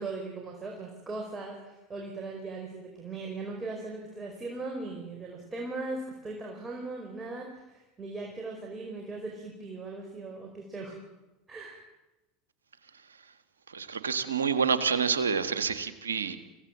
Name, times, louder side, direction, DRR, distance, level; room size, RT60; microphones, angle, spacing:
voice 1, 0.0-11.0 11.5-11.8, right 3 dB, 20° right, 0 dB, 4.9 m, -39 dB
voice 2, 13.7-16.4, right 6 dB, 90° right, 10 dB, 1.6 m, -28 dB
25.0 x 16.5 x 7.6 m, 1.0 s
hypercardioid pair, 85°, 0 cm